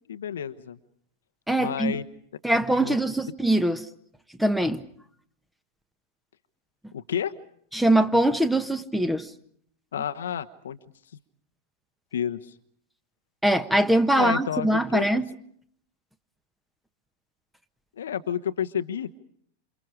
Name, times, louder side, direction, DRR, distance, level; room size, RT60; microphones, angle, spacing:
voice 1, 0.1-0.8 1.6-2.0 2.8-3.0 6.9-7.3 9.9-10.8 12.1-12.5 14.1-15.2 18.0-19.1, left 8 dB, 65° left, 9 dB, 1.1 m, -30 dB
voice 2, 1.5-2.0 2.4-3.9 4.4-4.8 7.7-9.3 13.4-15.3, right 1 dB, 5° right, 11 dB, 1.4 m, -22 dB
28.5 x 27.5 x 5.0 m, 0.67 s
figure-of-eight pair, 90°, 0 cm